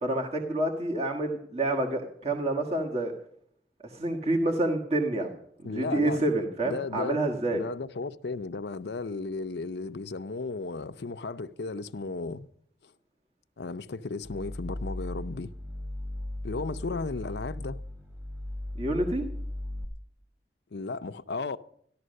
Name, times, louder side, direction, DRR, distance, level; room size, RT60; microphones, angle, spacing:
voice 1, 0.0-3.1 3.8-5.3 5.6-7.6 16.9-17.0 18.7-19.2, right 1 dB, 35° right, 1.4 m, -28 dB
voice 2, 5.6-6.2 6.7-7.2 7.5-12.5 13.6-15.5 16.4-17.8 20.7-21.6, left 3 dB, 70° left, 0.6 m, -35 dB
sound 1, 14.2-19.8, left 1 dB, 15° right, 1.7 m, -37 dB
14.0 x 12.0 x 6.5 m
head